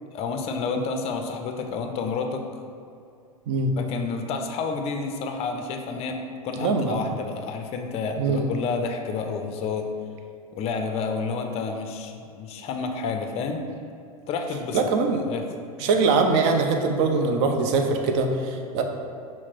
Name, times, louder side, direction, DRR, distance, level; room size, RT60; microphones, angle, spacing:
voice 1, 0.1-2.5 3.8-9.9 10.5-13.6 14.3-14.8 15.3-15.4, left 4 dB, 35° left, 5 dB, 0.5 m, -30 dB
voice 2, 3.5-3.8 6.6-7.0 8.2-8.5 14.7-15.2 15.8-18.8, right 4 dB, 50° right, 4 dB, 0.5 m, -22 dB
5.7 x 2.1 x 4.4 m, 2.4 s
hypercardioid pair, 95°, 19 cm